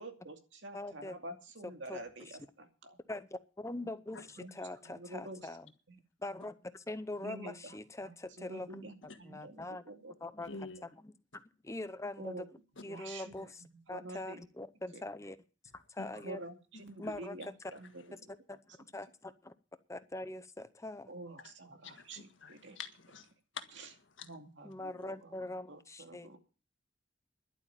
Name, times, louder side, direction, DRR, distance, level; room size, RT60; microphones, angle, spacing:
voice 1, 0.0-3.0 4.4-4.5 4.8-5.5 5.9-6.0 7.2-10.1 10.5-10.6 12.2-12.4 12.9-14.4 14.9-15.0 16.1-18.3 21.1-22.8 23.8-23.9 24.2-26.4, right 1 dB, 70° right, 2.4 m, -48 dB
voice 2, 0.7-1.1 1.9-2.3 3.1-5.7 6.2-8.9 9.2-9.8 10.2-10.5 11.0-11.1 11.6-12.4 12.8-13.6 13.9-15.4 15.7-16.4 17.0-17.4 18.5-19.5 19.9-21.1 24.6-26.3, left 2 dB, 15° left, 0.7 m, -43 dB
voice 3, 10.4-10.8 16.0-16.1 17.0-17.1 21.8-24.3, left 5 dB, 75° left, 1.7 m, -47 dB
11.5 x 8.3 x 9.0 m
head